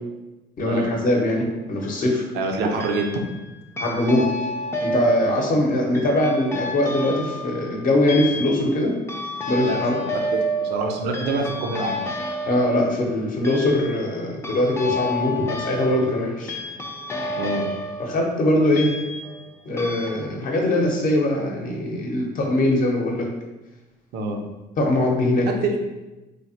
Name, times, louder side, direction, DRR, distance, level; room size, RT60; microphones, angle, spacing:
voice 1, 0.6-2.2 3.8-4.2 4.8-8.9 9.5-10.0 12.5-16.6 18.0-18.9 19.7-23.3 24.8-25.5, left 1 dB, 55° left, 0 dB, 0.7 m, -22 dB
sound 1, 1.5-2.0 2.8-3.4 3.8-19.5 19.8-20.1, equal, 15° left, 0.4 m, -30 dB
voice 2, 2.3-3.1 5.2-5.4 9.6-9.9 10.3-12.0 17.4-17.6 24.1-24.4 25.6-25.8, right 3 dB, 80° right, 3 dB, 0.5 m, -26 dB
3.2 x 2.0 x 2.8 m, 1.1 s
cardioid pair, 110°, 17 cm